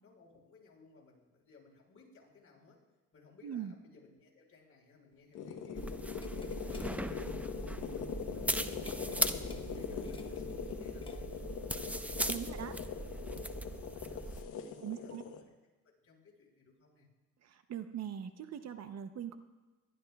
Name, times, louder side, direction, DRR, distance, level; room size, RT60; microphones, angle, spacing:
voice 1, 0.0-2.8 3.1-15.5 15.8-17.1, left 4 dB, 50° left, 0 dB, 4.3 m, -60 dB
sound 1, 5.1-11.6, left 2 dB, 15° left, 1.2 m, -59 dB
sound 2, 5.3-15.4, left 6 dB, 90° left, 1.1 m, -42 dB
sound 3, 5.7-14.4, right 1 dB, 5° right, 0.6 m, -39 dB
voice 2, 12.3-12.7 14.8-15.2 17.7-19.4, right 9 dB, 60° right, 10 dB, 0.8 m, -41 dB
22.0 x 12.0 x 2.3 m, 1.2 s
cardioid pair, 90°, 30 cm